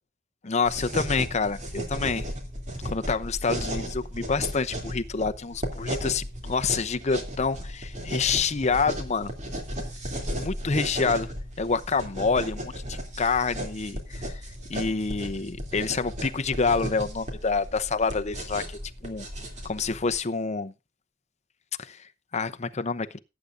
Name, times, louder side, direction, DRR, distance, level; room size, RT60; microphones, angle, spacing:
voice 1, 0.4-2.3 2.8-9.3 10.3-19.3 19.6-20.7 21.8-23.2, left 4 dB, 35° left, 0.7 m, -28 dB
sound 1, 0.6-20.2, equal, 40° right, 2.7 m, -35 dB
18.0 x 8.4 x 2.5 m
head